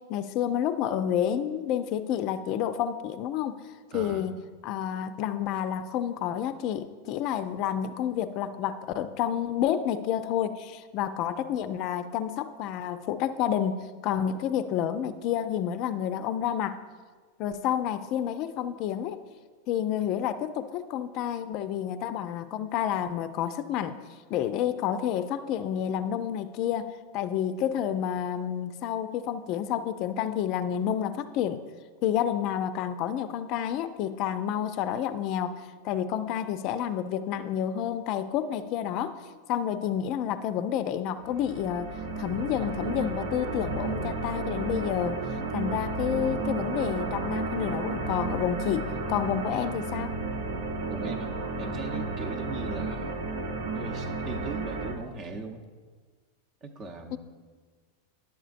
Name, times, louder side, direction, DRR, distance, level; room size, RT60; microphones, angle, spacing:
voice 1, 0.1-3.6 3.9-4.4 4.6-16.8 17.4-19.2 19.7-24.0 24.3-31.6 32.0-39.2 39.5-41.9 42.2-45.2 45.5-50.2 57.1-57.2, left 9 dB, 50° left, 11 dB, 0.4 m, -29 dB
voice 2, 3.9-4.3 50.9-53.2 53.7-55.6 56.6-57.2, right 3 dB, 40° right, 5 dB, 0.8 m, -39 dB
sound 1, 41.2-54.9, right 3 dB, 65° right, 0.8 m, -32 dB
11.0 x 7.0 x 2.5 m, 1.5 s
hypercardioid pair, 95°, 0 cm